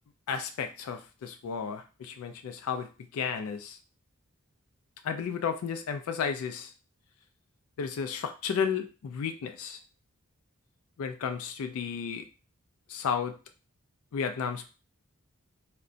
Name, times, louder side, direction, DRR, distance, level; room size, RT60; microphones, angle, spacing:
voice 1, 0.3-3.8 5.0-6.7 7.8-9.8 11.0-12.3 12.9-13.4 14.1-14.7, left 6 dB, 75° left, 7 dB, 0.3 m, -33 dB
2.5 x 2.1 x 3.8 m, 0.32 s
head